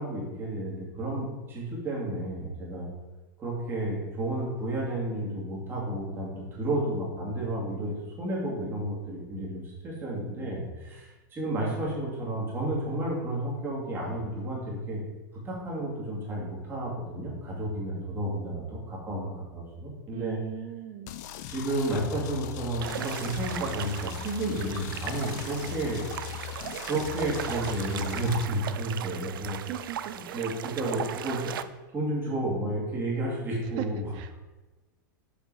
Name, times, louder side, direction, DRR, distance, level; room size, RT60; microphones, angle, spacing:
voice 1, 0.0-2.9 3.4-15.0 15.4-20.4 21.5-26.0 26.9-29.6 30.3-31.5 31.9-34.0, right 1 dB, 20° right, -4 dB, 2.5 m, -32 dB
voice 2, 20.1-21.2 29.7-30.5 33.6-33.9 34.1-34.3, right 13 dB, 45° right, 9 dB, 0.7 m, -39 dB
sound 1, 21.1-28.4, left 12 dB, 55° left, 0.5 m, -39 dB
sound 2, 22.8-31.6, right 10 dB, 85° right, 0.4 m, -37 dB
7.0 x 4.5 x 4.8 m, 1.2 s
supercardioid pair, 135°, 11 cm